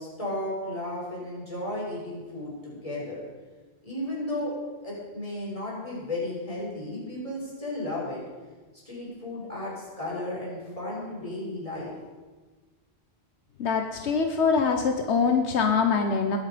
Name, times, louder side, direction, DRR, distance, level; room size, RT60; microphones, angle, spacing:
voice 1, 0.0-3.2 3.8-4.5 4.8-8.2 8.9-11.9, left 1 dB, 30° left, -6 dB, 5.6 m, -34 dB
voice 2, 13.6-16.4, left 5 dB, 85° left, 5 dB, 1.2 m, -24 dB
20.5 x 8.3 x 5.1 m, 1.3 s
omnidirectional pair, 1.1 m